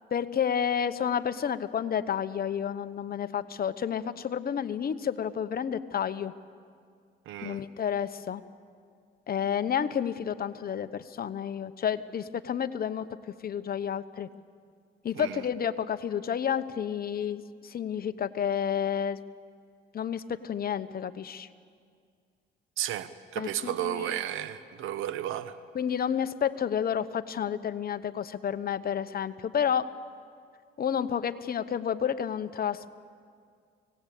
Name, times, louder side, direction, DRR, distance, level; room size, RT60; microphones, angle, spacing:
voice 1, 0.1-6.3 7.4-8.4 9.3-13.1 13.4-14.3 15.0-19.2 19.9-21.5 23.4-24.2 25.7-29.9 30.8-32.9, left 8 dB, 50° left, 12 dB, 1.0 m, -30 dB
voice 2, 7.3-7.6 15.1-15.4 22.8-25.6, right 12 dB, 90° right, 13 dB, 1.0 m, -33 dB
24.5 x 18.0 x 8.5 m, 2.2 s
cardioid pair, 90°, 20 cm